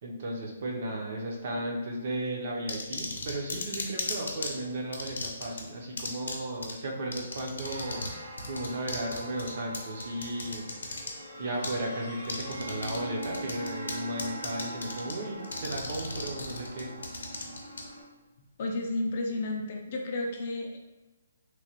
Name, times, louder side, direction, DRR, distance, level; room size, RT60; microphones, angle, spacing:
voice 1, 0.0-10.7 11.4-17.0, right 1 dB, 40° right, -1 dB, 0.5 m, -35 dB
sound 1, 2.7-4.5 4.9-5.6 6.0-6.4 6.6-6.7 7.1-8.1 8.4-11.1 11.6-11.8 12.2-13.0 13.2-13.9 14.2-15.1 15.4-17.8, left 3 dB, 80° left, 0.6 m, -35 dB
sound 2, 7.6-18.0, right 1 dB, 80° right, 1.3 m, -42 dB
voice 2, 18.6-20.8, left 2 dB, 35° left, 1 dB, 0.4 m, -32 dB
3.0 x 2.1 x 2.9 m, 1.1 s
hypercardioid pair, 170°, 0 cm